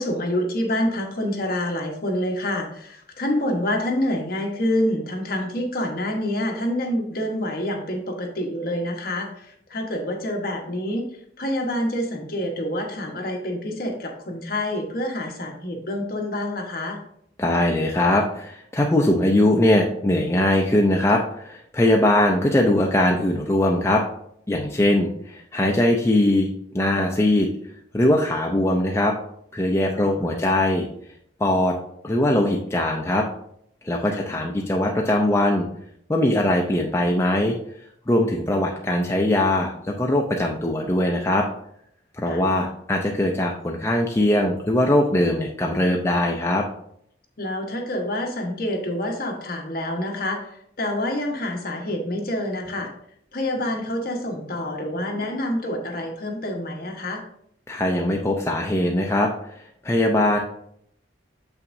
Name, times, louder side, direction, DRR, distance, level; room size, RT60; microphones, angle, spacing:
voice 1, 0.0-11.1 11.4-17.0 29.9-30.5 34.1-34.3 42.3-42.4 47.4-52.9 53.3-57.2, left 1 dB, 50° left, 1 dB, 1.2 m, -27 dB
voice 2, 17.4-24.0 24.5-27.5 27.9-29.2 29.5-30.9 31.4-31.8 32.0-33.3 33.8-35.7 36.1-37.5 38.1-41.5 42.2-46.7 57.7-60.4, left 1 dB, 15° left, 0 dB, 0.4 m, -21 dB
7.0 x 5.7 x 2.6 m, 0.70 s
head